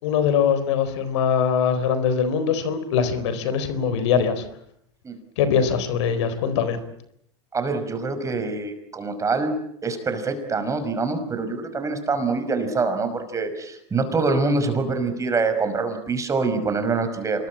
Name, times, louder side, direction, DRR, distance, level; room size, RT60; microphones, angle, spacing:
voice 1, 0.0-4.4 5.4-6.8, left 7 dB, 70° left, 12 dB, 4.2 m, -22 dB
voice 2, 7.5-17.5, right 3 dB, 20° right, 8 dB, 5.6 m, -25 dB
27.5 x 21.5 x 8.6 m, 0.72 s
hypercardioid pair, 105°, 15 cm